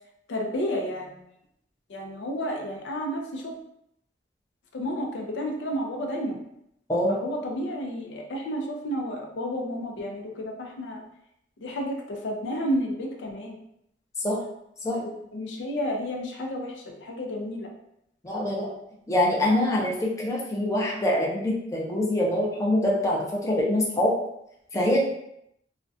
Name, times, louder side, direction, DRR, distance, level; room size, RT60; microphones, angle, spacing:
voice 1, 0.3-1.2 1.9-3.5 4.7-6.4 7.1-11.0 11.6-13.6 14.9-17.7, equal, 85° left, 1 dB, 0.4 m, -31 dB
voice 2, 18.2-18.7 19.1-24.2 24.7-25.0, left 1 dB, 20° left, -4 dB, 0.4 m, -24 dB
2.4 x 2.1 x 2.6 m, 0.78 s
head